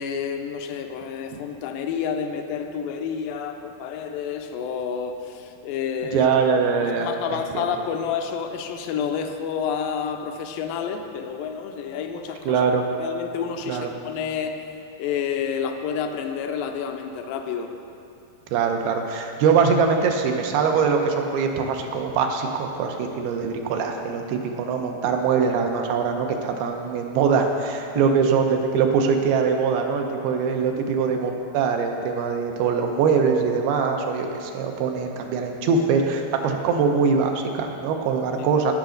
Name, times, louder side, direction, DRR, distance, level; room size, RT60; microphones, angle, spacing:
voice 1, 0.0-6.3 6.8-12.6 13.0-14.6 15.0-17.7 27.9-28.1 38.4-38.5, left 7 dB, 80° left, 5 dB, 2.1 m, -29 dB
voice 2, 6.1-7.7 12.5-12.8 13.7-13.9 18.5-38.7, right 5 dB, 85° right, 3 dB, 2.7 m, -22 dB
16.0 x 6.0 x 3.9 m, 2.6 s
omnidirectional pair, 4.4 m